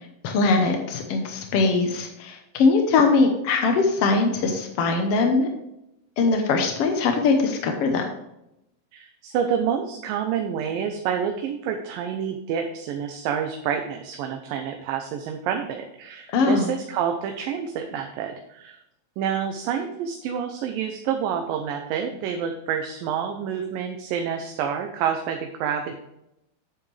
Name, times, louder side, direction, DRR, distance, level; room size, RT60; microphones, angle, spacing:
voice 1, 0.2-5.5 6.2-8.1 16.3-16.7, left 4 dB, 75° left, 4 dB, 1.4 m, -21 dB
voice 2, 8.9-18.8 19.2-25.9, right 8 dB, 80° right, 4 dB, 2.5 m, -28 dB
9.4 x 8.5 x 3.3 m, 0.84 s
omnidirectional pair, 4.1 m